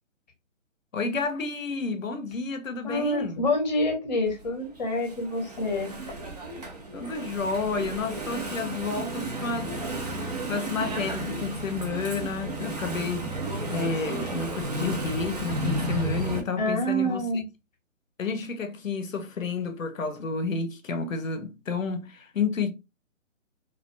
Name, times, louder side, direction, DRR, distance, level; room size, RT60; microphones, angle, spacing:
voice 1, 0.9-3.5 6.9-9.8 10.5-13.3 13.7-17.3 18.2-22.7, left 4 dB, 90° left, 0.6 m, -30 dB
voice 2, 2.8-5.9 16.6-17.4, left 1 dB, 35° left, 0.7 m, -27 dB
Engine / Mechanisms, 4.3-16.4, right 1 dB, 35° right, 0.4 m, -33 dB
2.4 x 2.2 x 2.5 m
figure-of-eight pair, 145°, 38 cm